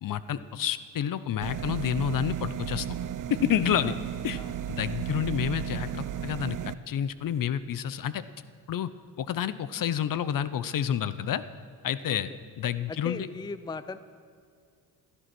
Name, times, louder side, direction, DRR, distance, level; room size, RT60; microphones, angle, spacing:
voice 1, 0.0-2.9 3.3-3.9 4.2-4.4 4.7-8.2 8.7-8.9 9.2-11.4 11.8-12.3 12.6-13.3, left 9 dB, 55° left, 15 dB, 0.8 m, -29 dB
sound 1, 1.4-6.7, right 10 dB, 50° right, 0.6 m, -34 dB
voice 2, 12.9-14.0, left 4 dB, 10° left, 14 dB, 0.5 m, -38 dB
16.0 x 13.5 x 6.1 m, 2.3 s
cardioid pair, 95°, 41 cm